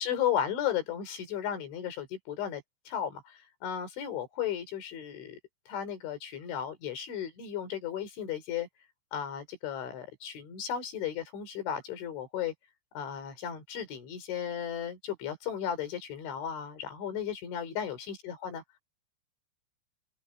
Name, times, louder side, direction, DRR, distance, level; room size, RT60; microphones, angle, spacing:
voice 1, 0.0-5.4 5.7-8.7 9.1-12.5 12.9-18.6, left 9 dB, 75° left, 6.4 m, -35 dB
open air
omnidirectional pair, 5.4 m